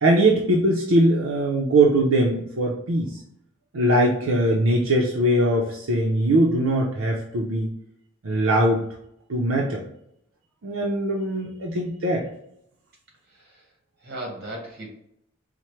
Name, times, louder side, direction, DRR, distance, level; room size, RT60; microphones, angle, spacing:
voice 1, 0.0-3.2 3.7-7.7 8.2-8.8 9.3-9.8 10.6-12.2, right 1 dB, 75° right, -2 dB, 0.6 m, -21 dB
voice 2, 13.3-13.7 14.0-14.9, right 1 dB, 50° right, 0 dB, 1.4 m, -37 dB
4.4 x 2.1 x 3.1 m, 0.75 s
head